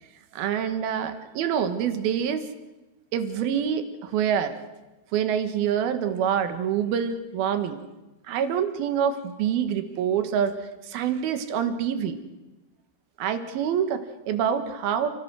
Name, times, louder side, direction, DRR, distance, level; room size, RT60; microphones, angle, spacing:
voice 1, 0.3-2.4 3.1-4.5 5.1-7.8 8.3-10.5 10.9-12.2 13.2-15.1, right 8 dB, 75° right, 9 dB, 3.3 m, -26 dB
29.5 x 16.5 x 6.3 m, 1.1 s
omnidirectional pair, 4.6 m